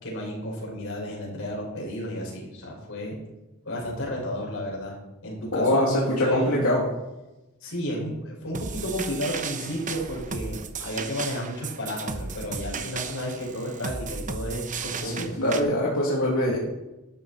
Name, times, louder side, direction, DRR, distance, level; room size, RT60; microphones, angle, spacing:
voice 1, 0.0-3.2 3.6-4.9 5.2-6.6 7.6-15.3, equal, 65° left, -2 dB, 5.7 m, -32 dB
voice 2, 5.5-6.8 15.0-16.6, left 1 dB, 85° left, -5 dB, 2.8 m, -23 dB
sound 1, 8.5-15.6, right 5 dB, 35° right, 1.0 m, -35 dB
12.5 x 12.0 x 4.3 m, 1.0 s
head